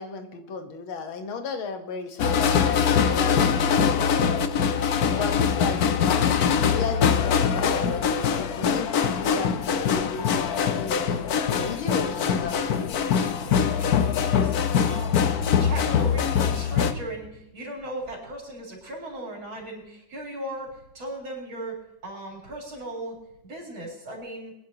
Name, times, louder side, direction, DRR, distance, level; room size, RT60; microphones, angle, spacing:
voice 1, 0.0-4.5 5.2-11.0 11.5-12.7, left 5 dB, 85° left, 6 dB, 2.1 m, -34 dB
sound 1, 2.2-16.9, left 7 dB, 60° left, 1.1 m, -23 dB
voice 2, 5.0-5.4 13.4-13.9 14.2-14.5 14.9-23.1 23.4-24.5, right 1 dB, 80° right, -2 dB, 4.8 m, -37 dB
24.0 x 10.5 x 2.8 m, 0.90 s
omnidirectional pair, 2.2 m